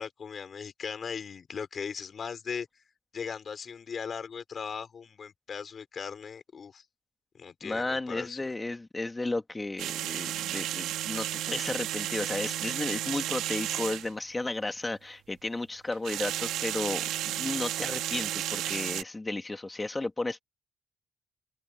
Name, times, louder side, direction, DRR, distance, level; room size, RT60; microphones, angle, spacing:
voice 1, 0.0-2.7 3.1-6.8 7.3-8.4, left 6 dB, 45° left, 6.0 m, -38 dB
voice 2, 7.6-20.4, left 2 dB, 20° left, 2.4 m, -34 dB
sound 1, 9.8-14.1 15.9-19.0, right 13 dB, 90° right, 2.4 m, -33 dB
open air
cardioid pair, 90°, 0 cm